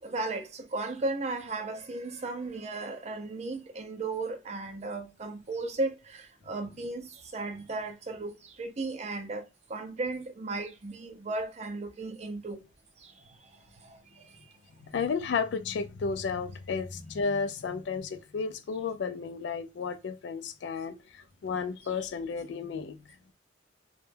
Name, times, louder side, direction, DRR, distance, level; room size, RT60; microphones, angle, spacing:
voice 1, 0.0-12.6 13.0-14.5, right 2 dB, 35° right, 0.4 m, -36 dB
voice 2, 14.9-23.0, left 5 dB, 65° left, 0.3 m, -33 dB
2.1 x 2.1 x 3.2 m
head